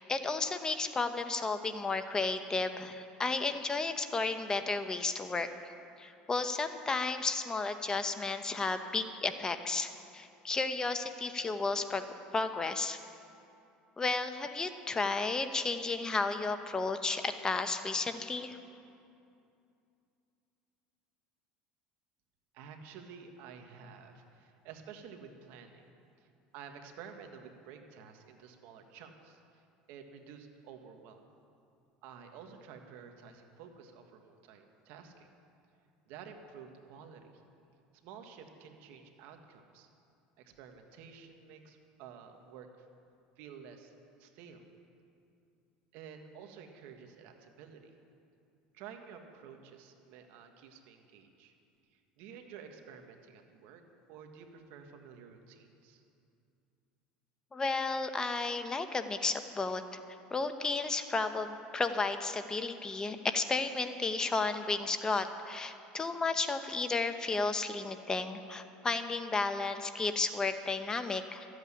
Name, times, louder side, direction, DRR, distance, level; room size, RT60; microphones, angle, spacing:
voice 1, 0.0-5.5 6.0-12.0 12.3-13.0 14.0-18.6 57.5-59.8 60.3-71.5, left 3 dB, 20° left, 8 dB, 0.9 m, -33 dB
voice 2, 22.5-25.9 26.2-26.3 26.5-29.6 29.9-31.2 32.0-35.3 36.1-37.3 38.0-39.9 40.4-42.7 43.4-43.9 44.2-44.6 45.9-47.9 48.7-51.5 51.9-53.8 54.1-56.0, right 6 dB, 70° right, 5 dB, 1.6 m, -51 dB
14.0 x 8.2 x 9.9 m, 2.6 s
supercardioid pair, 105°, 3 cm